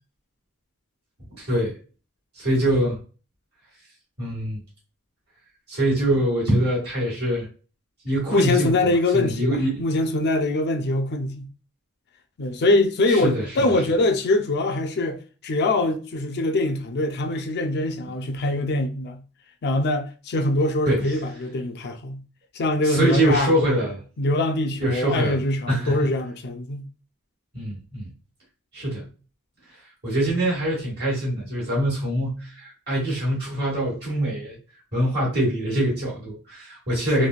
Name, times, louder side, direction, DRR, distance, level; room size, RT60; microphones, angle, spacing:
voice 1, 1.3-1.7 2.4-3.0 4.2-4.6 5.7-7.5 8.0-9.8 13.1-13.7 20.9-21.1 22.8-24.0 24.8-25.4 25.7-26.1 27.5-28.1 28.7-29.0 30.0-34.6 34.9-37.3, right 1 dB, 50° right, 1.4 m, -24 dB
voice 2, 8.3-11.5 12.4-19.2 19.6-22.2 22.5-23.6 24.2-26.9 37.2-37.3, left 2 dB, 50° left, 0.4 m, -23 dB
3.2 x 2.2 x 2.3 m
head